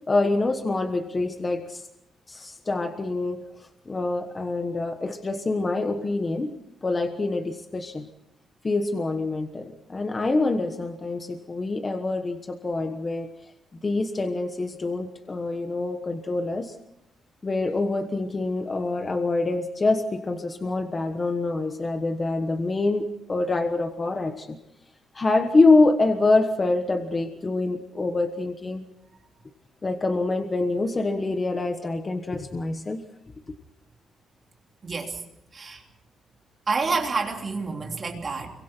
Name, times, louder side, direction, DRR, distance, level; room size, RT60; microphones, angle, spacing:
voice 1, 0.1-1.9 2.3-3.5 3.9-8.1 8.6-13.3 13.8-16.7 17.4-24.6 25.1-28.8 29.8-33.0, left 3 dB, 20° left, 6 dB, 1.3 m, -25 dB
voice 2, 34.8-35.2 35.5-35.8 36.7-38.5, right 4 dB, 30° right, 2 dB, 3.2 m, -28 dB
30.0 x 23.5 x 4.5 m, 0.81 s
cardioid pair, 180°, 0 cm